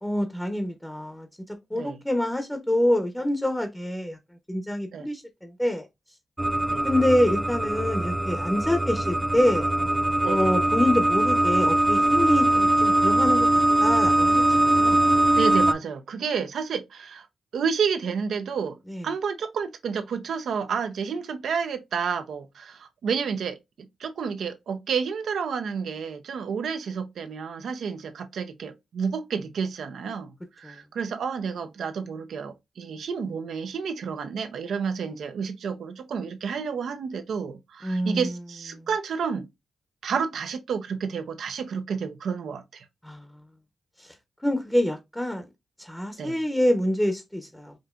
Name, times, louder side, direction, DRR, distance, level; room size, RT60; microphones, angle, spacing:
voice 1, 0.0-4.2 4.5-5.9 6.8-9.7 10.2-13.5 13.8-15.0 18.9-19.1 30.6-30.8 37.8-38.3 38.7-38.9 43.0-43.4 44.0-44.1 44.4-45.5 45.8-47.7, left 1 dB, 10° left, 0.9 m, -26 dB
sound 1, 6.4-15.7, right 1 dB, 10° right, 0.4 m, -22 dB
voice 2, 15.3-17.3 17.5-18.8 19.0-39.5 40.0-42.8 46.2-46.4, right 6 dB, 80° right, 0.7 m, -30 dB
5.1 x 2.8 x 2.4 m
cardioid pair, 60°, 0 cm